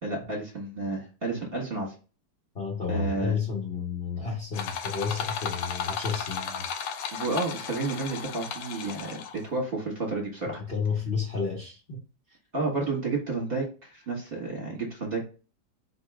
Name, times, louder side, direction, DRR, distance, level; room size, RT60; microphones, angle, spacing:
voice 1, 0.0-1.9 2.9-3.4 7.1-10.6 12.5-15.2, right 3 dB, 35° right, 1.4 m, -31 dB
voice 2, 2.5-6.7 10.7-12.0, left 5 dB, 40° left, 1.0 m, -31 dB
sound 1, 4.5-9.5, left 7 dB, 75° left, 1.3 m, -34 dB
4.5 x 2.9 x 3.5 m
omnidirectional pair, 2.0 m